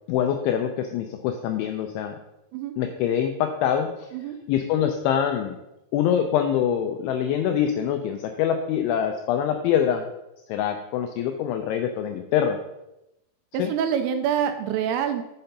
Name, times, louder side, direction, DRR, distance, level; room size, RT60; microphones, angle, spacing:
voice 1, 0.1-2.2 2.8-3.9 4.5-5.6 5.9-10.0 10.5-12.6 13.6-13.7, left 9 dB, 85° left, 6 dB, 2.7 m, -24 dB
voice 2, 13.5-15.2, right 8 dB, 85° right, 7 dB, 2.9 m, -26 dB
6.8 x 5.8 x 5.3 m, 0.90 s
omnidirectional pair, 6.0 m